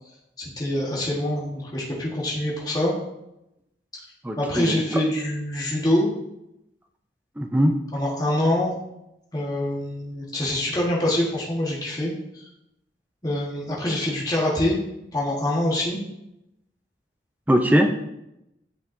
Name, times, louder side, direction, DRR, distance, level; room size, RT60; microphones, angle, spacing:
voice 1, 0.6-2.9 4.4-6.1 7.9-8.7 9.3-12.1 13.2-14.8 15.1-16.0, left 1 dB, 20° left, -5 dB, 1.3 m, -25 dB
voice 2, 4.2-4.8 7.4-7.8 17.5-17.9, equal, 10° right, 4 dB, 0.5 m, -20 dB
8.7 x 5.7 x 2.6 m, 0.86 s
head